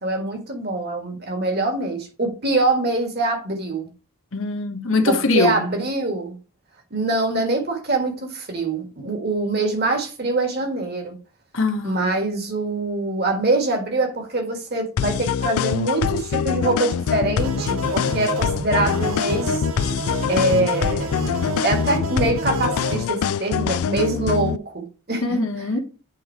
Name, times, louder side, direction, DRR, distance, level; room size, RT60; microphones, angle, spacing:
voice 1, 0.0-3.9 5.1-6.4 6.9-11.2 11.8-19.6 20.3-21.2 21.6-25.2, right 2 dB, 45° right, 1.7 m, -24 dB
voice 2, 4.3-5.7 11.5-12.0 25.2-25.8, left 3 dB, 65° left, 1.3 m, -22 dB
sound 1, 15.0-24.6, left 8 dB, 80° left, 0.3 m, -24 dB
sound 2, 17.4-23.0, right 3 dB, 70° right, 0.7 m, -30 dB
8.2 x 3.9 x 4.6 m
head